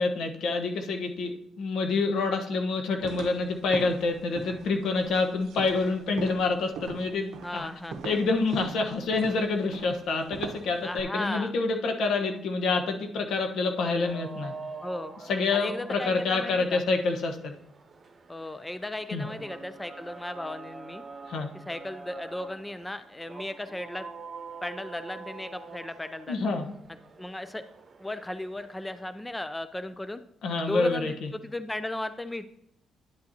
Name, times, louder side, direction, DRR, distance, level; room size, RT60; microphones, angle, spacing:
voice 1, 0.0-7.7 8.0-14.5 15.2-17.5 19.1-19.3 21.3-21.5 26.3-26.7 30.4-31.3, left 3 dB, 70° left, 4 dB, 1.0 m, -27 dB
sound 1, 3.0-11.0, right 6 dB, 80° right, 0.7 m, -42 dB
voice 2, 7.4-8.2 10.8-11.5 14.8-15.1 15.5-16.8 18.3-21.0 21.7-24.1 24.6-26.5 27.2-27.6 28.0-30.2 30.6-32.5, left 1 dB, 10° left, 11 dB, 0.4 m, -36 dB
sound 2, 14.0-29.1, right 4 dB, 40° right, 1.2 m, -45 dB
10.0 x 7.9 x 2.8 m, 0.73 s
cardioid pair, 90°, 0 cm